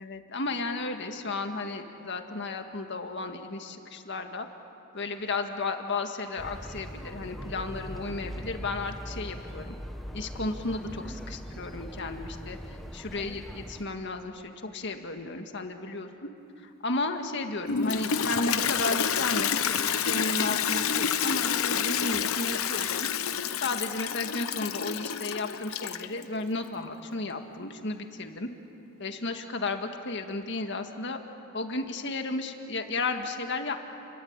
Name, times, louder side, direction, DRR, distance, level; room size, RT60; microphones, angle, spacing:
voice 1, 0.0-4.5 4.9-9.8 10.1-12.6 12.9-16.3 16.6-23.1 23.6-28.5 29.0-31.2 31.5-33.8, left 3 dB, 55° left, 5 dB, 1.8 m, -33 dB
sound 1, 6.4-13.8, equal, ahead, 1.0 m, -41 dB
Toilet flush, 17.6-26.2, left 7 dB, 80° left, 0.9 m, -28 dB
29.5 x 22.5 x 8.8 m, 2.7 s
head